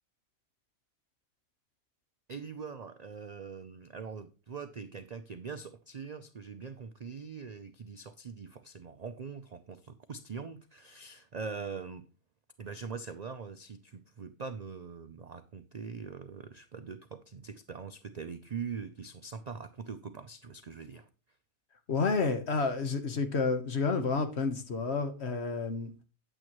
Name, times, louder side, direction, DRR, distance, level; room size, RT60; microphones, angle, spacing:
voice 1, 2.3-12.0 12.6-21.1, right 5 dB, 65° right, 0.4 m, -42 dB
voice 2, 21.9-25.9, left 4 dB, 50° left, 1.3 m, -30 dB
8.8 x 8.8 x 3.0 m
omnidirectional pair, 1.4 m